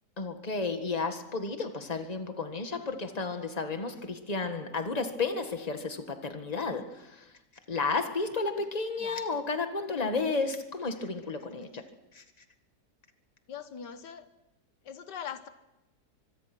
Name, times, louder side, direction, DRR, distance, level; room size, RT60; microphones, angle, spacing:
voice 1, 0.2-7.3 7.7-11.9 12.1-12.2, left 4 dB, 25° left, 7 dB, 1.8 m, -32 dB
voice 2, 13.5-14.3 14.8-15.5, left 7 dB, 85° left, 10 dB, 1.8 m, -42 dB
25.0 x 22.5 x 6.1 m, 0.95 s
omnidirectional pair, 1.8 m